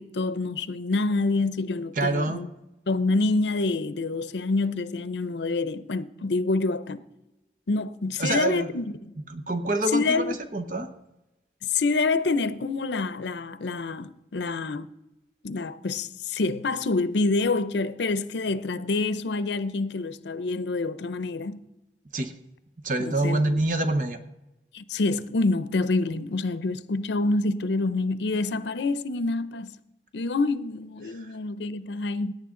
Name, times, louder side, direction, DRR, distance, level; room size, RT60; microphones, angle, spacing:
voice 1, 0.0-2.5 2.9-7.0 7.7-9.1 9.9-10.4 11.6-14.9 15.4-21.6 23.0-23.6 24.7-29.8 30.1-32.3, left 3 dB, 85° left, 0.6 m, -27 dB
voice 2, 2.0-2.4 8.2-8.7 9.3-10.9 22.1-22.3 22.8-24.2 31.1-31.3, right 2 dB, 45° right, 0.8 m, -26 dB
17.5 x 9.1 x 3.8 m
head